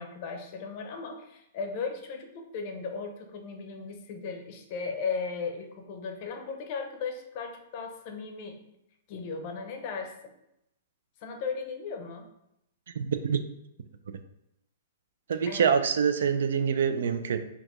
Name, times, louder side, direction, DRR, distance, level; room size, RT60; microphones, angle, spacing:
voice 1, 0.0-8.6 9.1-10.1 11.2-12.3 15.4-15.8, left 5 dB, 35° left, 4 dB, 0.6 m, -36 dB
voice 2, 13.0-13.4 15.3-17.4, right 7 dB, 70° right, 9 dB, 0.4 m, -25 dB
4.1 x 2.8 x 3.0 m, 0.83 s
hypercardioid pair, 170°, 0 cm